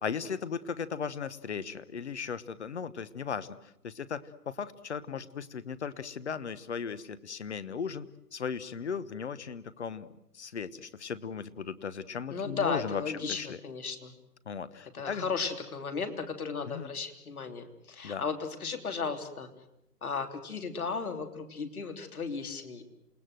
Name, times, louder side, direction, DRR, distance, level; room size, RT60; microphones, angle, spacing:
voice 1, 0.0-3.5 3.8-10.1 10.3-13.0 13.3-13.6 14.4-15.3 16.7-16.9 18.0-18.2, left 6 dB, 45° left, 16 dB, 1.2 m, -37 dB
voice 2, 12.3-14.1 14.9-19.5 20.0-22.8, left 5 dB, 65° left, 5 dB, 3.4 m, -35 dB
28.5 x 19.0 x 7.8 m, 0.81 s
hypercardioid pair, 155°, 48 cm